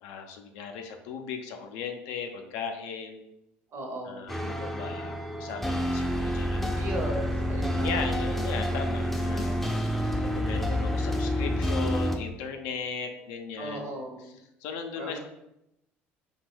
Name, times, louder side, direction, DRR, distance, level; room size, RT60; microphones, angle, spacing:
voice 1, 0.0-3.3 4.0-6.9 7.7-9.7 10.2-13.9 14.6-15.2, left 6 dB, 80° left, 5 dB, 0.4 m, -37 dB
voice 2, 3.7-4.3 6.7-8.0 13.6-14.4 15.0-15.2, right 1 dB, 55° right, 1 dB, 0.8 m, -36 dB
sound 1, 4.3-12.2, equal, 5° left, 0.4 m, -28 dB
2.6 x 2.2 x 3.3 m, 0.84 s
supercardioid pair, 80°, 5 cm